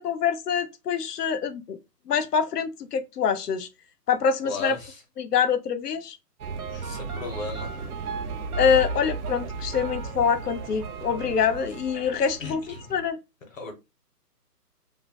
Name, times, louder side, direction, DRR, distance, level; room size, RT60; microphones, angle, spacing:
voice 1, 0.0-1.8 2.1-3.7 4.1-4.8 5.2-6.2 6.7-6.8 8.6-13.2, left 7 dB, 70° left, 0.6 m, -25 dB
voice 2, 4.4-5.0 6.8-7.8 12.4-13.0 13.5-13.7, left 3 dB, 50° left, 1.1 m, -36 dB
sound 1, 6.4-13.1, right 4 dB, 65° right, 0.5 m, -34 dB
3.0 x 2.6 x 2.3 m
hypercardioid pair, 175°, 49 cm